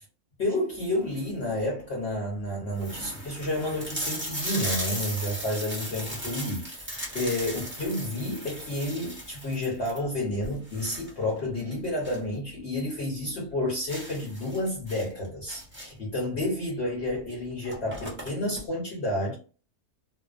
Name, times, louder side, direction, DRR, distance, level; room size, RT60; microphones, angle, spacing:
voice 1, 0.4-19.4, left 1 dB, 55° left, 0.9 m, -30 dB
sound 1, 0.9-1.4 2.0-2.1 2.4-2.5 2.8-12.3 12.6-12.7 13.1-13.2 13.9-16.1 17.1-17.2 17.5-18.6, equal, 10° right, 0.6 m, -37 dB
2.5 x 2.0 x 2.4 m
omnidirectional pair, 1.6 m